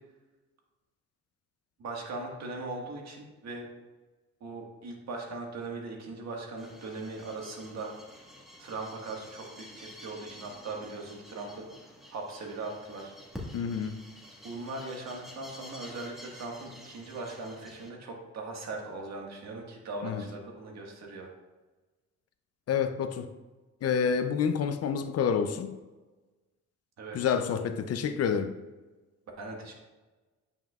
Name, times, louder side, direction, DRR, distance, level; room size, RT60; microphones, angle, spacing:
voice 1, 1.8-3.7 4.4-7.9 8.6-11.7 12.1-13.1 14.4-21.3 27.0-27.2 29.4-29.7, right 3 dB, 60° right, 1.6 m, -39 dB
sound 1, 6.6-17.9, left 1 dB, ahead, 1.6 m, -49 dB
voice 2, 13.5-14.0 20.0-20.2 22.7-23.3 23.8-25.8 27.1-28.5, left 7 dB, 55° left, 0.6 m, -28 dB
9.0 x 5.6 x 2.4 m
cardioid pair, 90°, 30 cm